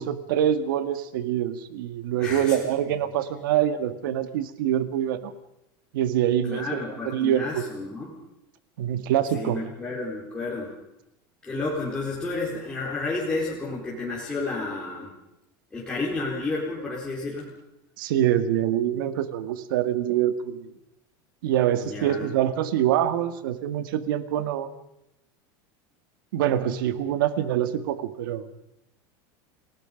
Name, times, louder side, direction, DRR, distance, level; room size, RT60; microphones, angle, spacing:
voice 1, 0.0-5.3 5.9-7.6 8.8-9.6 18.0-20.7 21.4-24.7 26.3-28.5, right 11 dB, 75° right, 10 dB, 2.0 m, -25 dB
voice 2, 2.2-2.7 6.4-8.1 9.3-10.7 11.4-15.1 15.7-17.5 21.8-22.3, left 3 dB, 10° left, -6 dB, 4.3 m, -31 dB
29.0 x 19.0 x 5.3 m, 0.86 s
supercardioid pair, 175°, 11 cm